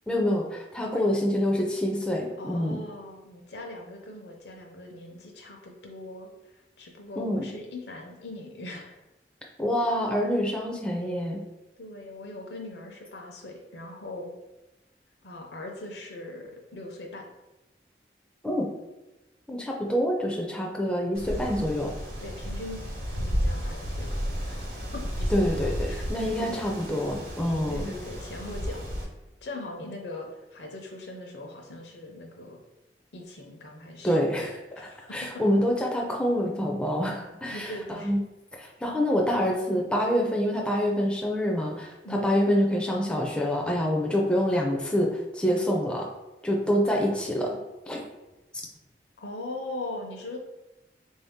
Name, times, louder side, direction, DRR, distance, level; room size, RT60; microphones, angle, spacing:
voice 1, 0.1-2.8 7.2-7.5 9.6-11.4 18.4-18.7 19.5-21.9 25.3-27.8 34.0-34.6 35.1-37.7 38.0-38.2 38.5-46.1 46.4-47.6 47.9-48.0, equal, 5° left, -1 dB, 0.4 m, -26 dB
voice 2, 2.4-9.0 11.8-14.3 15.2-17.3 22.2-22.9 23.1-26.6 27.7-28.9 29.4-32.6 33.1-34.2 34.7-35.4 37.4-38.1 42.0-42.3 49.2-50.4, left 2 dB, 75° left, 1 dB, 0.7 m, -40 dB
Wind, 21.1-29.0, equal, 55° right, 1.0 m, -32 dB
3.7 x 2.7 x 3.5 m, 1.0 s
head